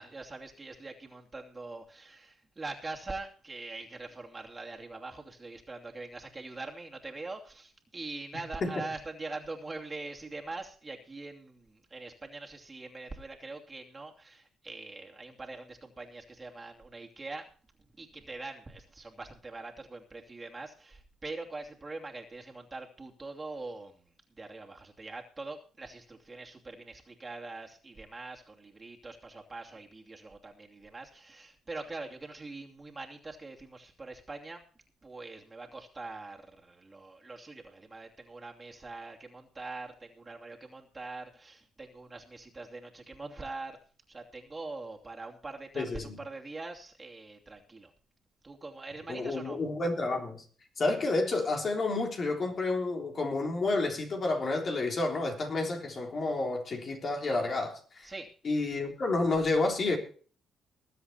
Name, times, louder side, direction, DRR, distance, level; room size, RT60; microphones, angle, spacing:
voice 1, 0.0-17.4 18.0-24.0 24.4-34.6 35.0-43.8 44.1-47.9 48.4-49.6 58.0-58.3, right 3 dB, 25° right, 2.8 m, -43 dB
voice 2, 45.8-46.2 49.1-50.4 50.8-58.1 58.4-60.0, left 2 dB, 45° left, 3.6 m, -30 dB
21.0 x 7.9 x 4.3 m
cardioid pair, 90°, 0 cm